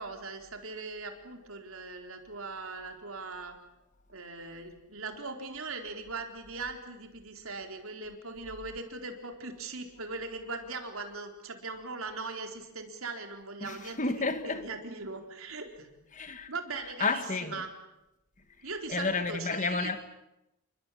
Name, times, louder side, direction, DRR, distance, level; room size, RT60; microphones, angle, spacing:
voice 1, 0.0-3.6 4.1-15.9 16.5-17.7 18.6-19.9, right 3 dB, 70° right, 4.1 m, -40 dB
voice 2, 13.6-14.6 16.1-16.5 17.0-17.5 18.9-20.0, left 3 dB, 35° left, 2.0 m, -31 dB
29.0 x 24.0 x 8.5 m
head